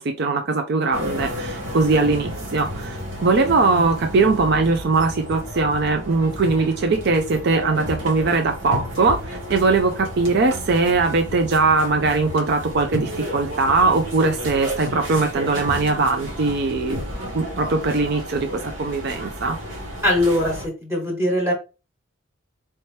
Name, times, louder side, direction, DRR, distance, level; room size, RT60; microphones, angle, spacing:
voice 1, 0.0-17.1 17.3-19.6, right 3 dB, 55° right, 4 dB, 0.5 m, -21 dB
sound 1, 0.9-20.7, equal, 70° right, 1.6 m, -32 dB
voice 2, 20.0-21.5, left 1 dB, 15° right, -2 dB, 1.3 m, -21 dB
4.3 x 2.8 x 3.2 m, 0.29 s
head